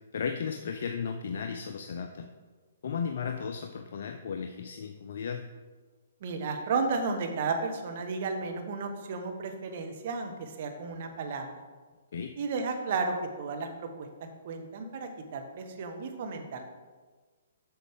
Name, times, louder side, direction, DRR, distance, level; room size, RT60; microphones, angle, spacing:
voice 1, 0.1-2.3 2.8-5.4 12.1-12.3, left 6 dB, 60° left, 5 dB, 0.5 m, -35 dB
voice 2, 6.2-11.5 12.4-16.6, right 4 dB, 50° right, 5 dB, 1.1 m, -33 dB
7.9 x 6.2 x 3.6 m, 1.4 s
figure-of-eight pair, 130°, 0 cm